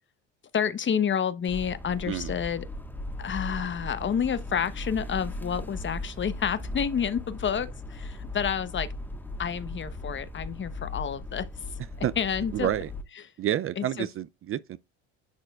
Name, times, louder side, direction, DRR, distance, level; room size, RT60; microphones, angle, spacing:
voice 1, 0.5-2.7 3.2-8.9 9.4-11.5 12.2-12.7 13.8-14.1, left 7 dB, 30° left, 1.0 m, -29 dB
sound 1, 1.5-13.0, left 2 dB, 5° left, 1.7 m, -38 dB
voice 2, 12.5-12.9 13.4-14.8, right 11 dB, 35° right, 0.5 m, -29 dB
10.5 x 4.3 x 2.4 m
hypercardioid pair, 70°, 37 cm